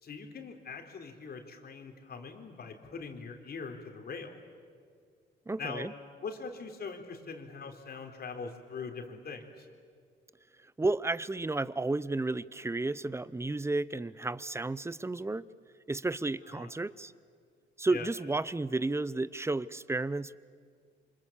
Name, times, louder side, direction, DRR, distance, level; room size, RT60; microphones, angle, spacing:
voice 1, 0.0-4.4 5.6-5.9 6.2-9.7 16.5-16.7 17.9-18.1, left 5 dB, 50° left, 4 dB, 3.5 m, -42 dB
voice 2, 5.5-5.9 10.8-15.5 15.9-17.1 17.8-20.4, right 2 dB, 15° right, 18 dB, 0.7 m, -32 dB
28.0 x 25.5 x 7.3 m, 2.1 s
cardioid pair, 90°, 20 cm